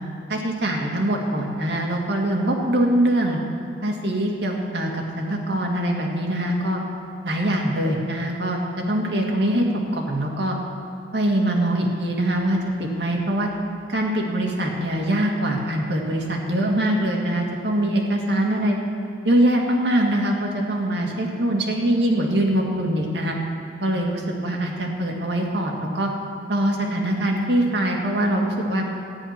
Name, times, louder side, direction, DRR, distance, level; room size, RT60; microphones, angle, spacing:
voice 1, 0.3-3.4 3.8-6.8 7.2-9.7 9.9-10.6 11.1-13.5 13.9-18.8 19.2-23.4 23.8-26.1 26.5-28.8, right 1 dB, 80° right, 0 dB, 2.0 m, -23 dB
13.5 x 10.0 x 5.9 m, 2.7 s
head